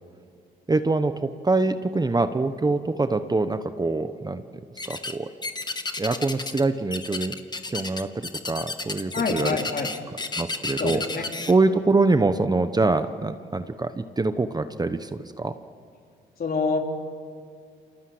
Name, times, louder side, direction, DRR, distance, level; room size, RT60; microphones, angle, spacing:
voice 1, 0.7-4.4 4.9-5.3 6.0-7.4 7.7-9.6 10.1-15.5, right 3 dB, 20° right, 10 dB, 1.0 m, -24 dB
sound 1, 4.8-5.2 5.4-6.6 6.9-11.5, left 3 dB, 20° left, 1.6 m, -32 dB
voice 2, 9.1-9.9 10.8-11.2 16.4-16.8, left 4 dB, 50° left, 2 dB, 4.0 m, -26 dB
29.0 x 25.0 x 7.9 m, 2.2 s
cardioid pair, 90°, 20 cm